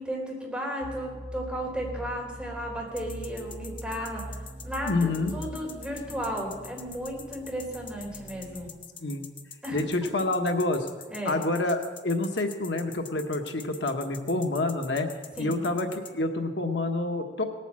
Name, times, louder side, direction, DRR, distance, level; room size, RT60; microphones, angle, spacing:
voice 1, 0.0-8.7 9.6-10.1 11.1-11.4 15.3-15.6, equal, 5° right, -3 dB, 3.9 m, -34 dB
sound 1, 0.8-8.7, right 1 dB, 35° right, 1.4 m, -42 dB
sound 2, 3.0-16.1, left 6 dB, 30° left, 1.0 m, -45 dB
voice 2, 4.8-5.3 9.0-9.2 9.7-10.9 11.2-15.1 15.4-17.4, left 2 dB, 70° left, 5 dB, 1.1 m, -28 dB
18.5 x 9.0 x 7.4 m, 1.4 s
head